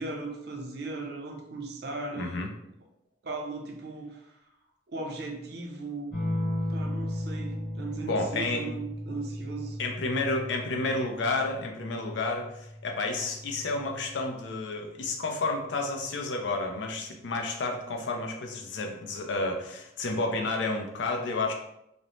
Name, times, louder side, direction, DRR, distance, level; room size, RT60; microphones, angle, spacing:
voice 1, 0.0-2.5 3.2-4.3 4.9-6.1 6.7-9.8, right 3 dB, 55° right, 2 dB, 0.5 m, -37 dB
voice 2, 2.1-2.5 8.0-8.7 9.8-21.5, left 3 dB, 70° left, 2 dB, 0.4 m, -31 dB
sound 1, 6.1-15.2 16.6-17.2, left 1 dB, 25° left, 1.1 m, -36 dB
2.5 x 2.0 x 2.9 m, 0.81 s
head